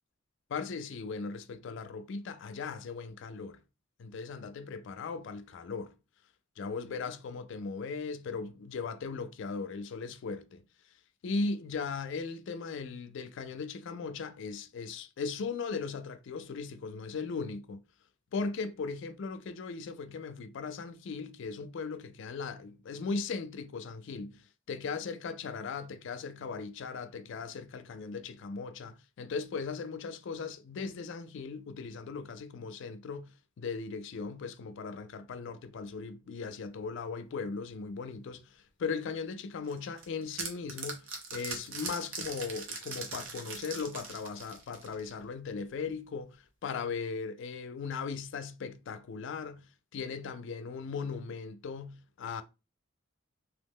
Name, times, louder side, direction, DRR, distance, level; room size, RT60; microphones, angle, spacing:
voice 1, 0.5-3.6 4.0-5.9 6.6-10.6 11.2-17.8 18.3-52.4, left 4 dB, 65° left, 0.3 m, -38 dB
sound 1, 39.7-45.2, right 4 dB, 80° right, 0.8 m, -40 dB
2.8 x 2.0 x 3.5 m
head